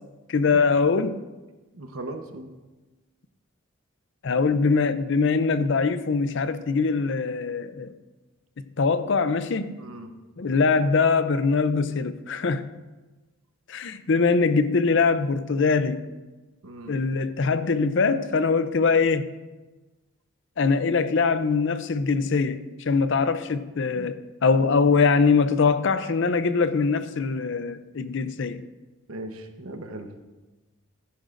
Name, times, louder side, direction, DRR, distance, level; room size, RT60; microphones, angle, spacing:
voice 1, 0.3-1.2 4.2-7.9 8.8-9.8 10.4-12.7 13.7-16.0 16.9-19.3 20.6-22.6 22.9-24.2 24.4-28.6, left 4 dB, 60° left, 12 dB, 0.5 m, -22 dB
voice 2, 1.7-2.5 9.8-10.1 16.6-17.0 24.0-24.1 29.1-30.1, right 2 dB, 90° right, 6 dB, 1.0 m, -38 dB
15.0 x 10.5 x 2.6 m, 1.2 s
head